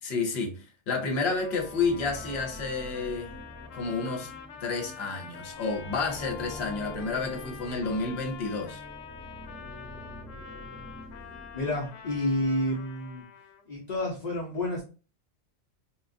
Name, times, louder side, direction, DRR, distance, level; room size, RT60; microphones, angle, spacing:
voice 1, 0.0-3.3 3.7-4.3 4.6-8.8, left 4 dB, 60° left, 1.0 m, -30 dB
Trumpet, 1.3-13.7, left 7 dB, 90° left, 1.0 m, -46 dB
sound 1, 1.3-12.4, left 1 dB, 20° left, 1.1 m, -46 dB
voice 2, 11.5-13.2 13.7-14.8, left 1 dB, 45° left, 0.6 m, -29 dB
3.6 x 2.4 x 2.5 m
omnidirectional pair, 1.3 m